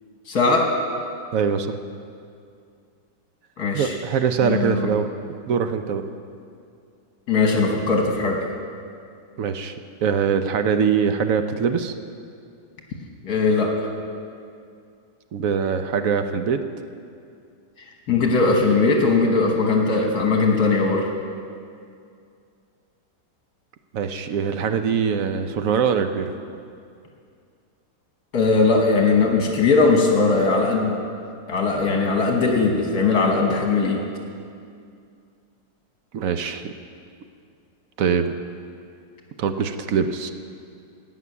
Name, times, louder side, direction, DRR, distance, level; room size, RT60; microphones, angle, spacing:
voice 1, 0.3-0.7 3.6-3.9 4.4-4.9 7.3-8.4 13.2-13.9 18.1-21.1 28.3-31.0 31.5-34.0, left 3 dB, 65° left, 1 dB, 1.8 m, -19 dB
voice 2, 1.3-1.7 3.7-5.1 5.5-6.0 9.4-9.8 10.0-11.9 15.3-16.6 23.9-26.4 36.1-36.7 38.0-38.3 39.4-40.3, right 6 dB, 65° right, 8 dB, 0.9 m, -23 dB
17.0 x 6.0 x 9.2 m, 2.4 s
omnidirectional pair, 1.8 m